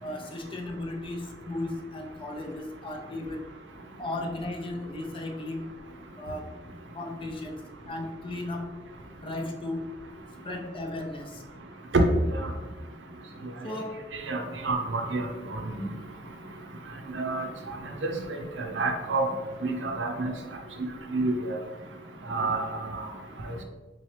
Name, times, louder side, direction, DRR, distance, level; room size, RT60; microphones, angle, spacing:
voice 1, 0.0-3.5 4.0-5.7 6.2-6.5 6.9-8.8 9.2-9.9 10.4-11.4 13.6-14.0, left 2 dB, 30° left, 2 dB, 0.4 m, -35 dB
voice 2, 14.3-15.9 17.1-17.5 18.0-18.2 18.6-19.2 19.6-20.3 21.1-21.6 22.3-23.1, right 2 dB, 80° right, 4 dB, 0.6 m, -28 dB
4.0 x 3.0 x 3.2 m, 1.2 s
head